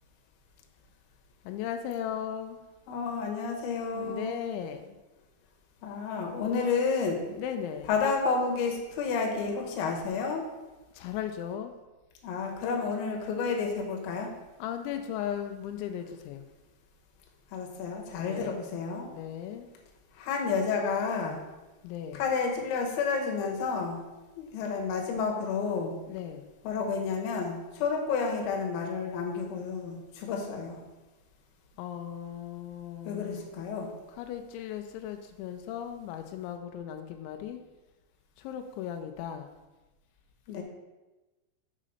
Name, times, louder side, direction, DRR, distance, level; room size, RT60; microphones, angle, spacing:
voice 1, 1.5-2.6 3.9-5.0 7.4-7.9 10.9-11.7 14.6-16.4 18.2-18.6 19.1-19.7 21.8-22.2 26.1-26.5 31.8-33.5 34.2-37.6 38.4-39.5, left 9 dB, 85° left, 6 dB, 2.9 m, -37 dB
voice 2, 2.9-4.4 5.8-7.2 7.9-10.4 12.2-14.3 17.5-19.1 20.1-21.4 22.1-24.0 24.4-26.0 26.6-30.8 33.0-33.9 40.5-40.6, left 5 dB, 70° left, 1 dB, 2.5 m, -30 dB
7.5 x 3.9 x 6.3 m, 1.1 s
omnidirectional pair, 5.3 m